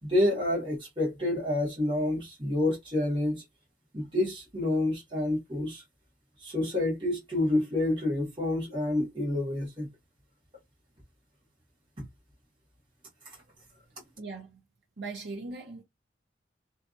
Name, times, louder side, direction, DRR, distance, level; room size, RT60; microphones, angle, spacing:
voice 1, 0.0-3.4 3.9-5.8 6.4-9.9 12.0-12.1, left 1 dB, 25° right, 1.2 m, -28 dB
voice 2, 14.2-14.6 15.0-15.8, right 3 dB, 75° right, 0.7 m, -39 dB
2.6 x 2.3 x 2.5 m
head